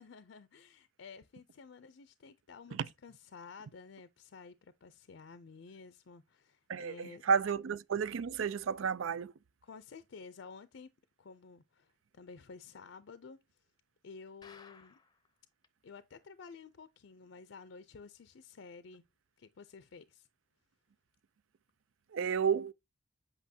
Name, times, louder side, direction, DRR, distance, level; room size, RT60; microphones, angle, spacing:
voice 1, 0.0-7.2 9.6-10.9 11.2-13.4 14.0-15.0 15.8-19.0 19.4-20.3, left 5 dB, 70° left, 0.5 m, -52 dB
voice 2, 6.7-9.3 22.1-22.7, right 6 dB, 85° right, 0.4 m, -32 dB
sound 1, 14.4-15.3 15.6-15.7 16.0-16.1 16.6-16.7, left 4 dB, 20° left, 0.6 m, -57 dB
8.3 x 5.4 x 2.7 m
head